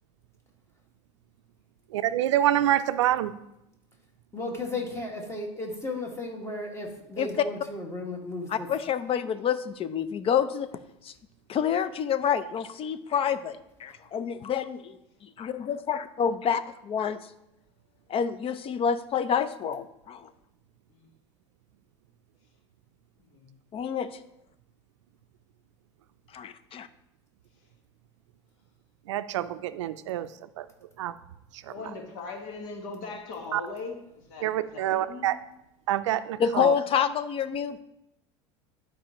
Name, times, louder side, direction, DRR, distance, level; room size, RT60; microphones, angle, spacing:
voice 1, 1.9-3.3 29.1-30.3 30.6-30.7 31.0-31.1 31.6-31.7 33.5-33.6 34.4-35.4 35.9-36.7, right 12 dB, 85° right, 12 dB, 0.4 m, -26 dB
voice 2, 4.3-8.7, left 2 dB, 20° left, 1 dB, 2.0 m, -35 dB
voice 3, 8.5-10.7 11.0-11.1 11.5-17.2 18.1-20.3 23.7-24.2 26.3-26.9 36.4-37.8, left 8 dB, 40° left, 13 dB, 0.6 m, -28 dB
voice 4, 31.7-35.3, left 4 dB, 70° left, 3 dB, 1.6 m, -40 dB
11.5 x 4.8 x 3.0 m, 0.85 s
hypercardioid pair, 85°, 15 cm